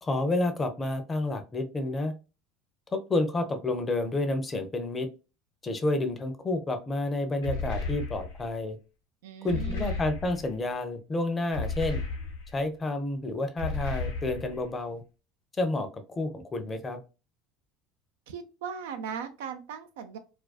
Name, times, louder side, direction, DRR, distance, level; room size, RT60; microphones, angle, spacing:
voice 1, 0.0-2.1 2.9-5.1 5.6-8.8 9.4-12.0 12.5-15.0 15.6-17.0, left 2 dB, 25° left, 7 dB, 0.6 m, -30 dB
sound 1, 7.4-8.5 9.5-10.6 11.5-12.6 13.6-14.7, left 3 dB, 85° left, 0.8 m, -34 dB
voice 2, 9.2-10.1 18.3-20.2, right 7 dB, 75° right, 8 dB, 0.4 m, -38 dB
2.4 x 2.2 x 2.3 m, 0.31 s
hypercardioid pair, 75°, 0 cm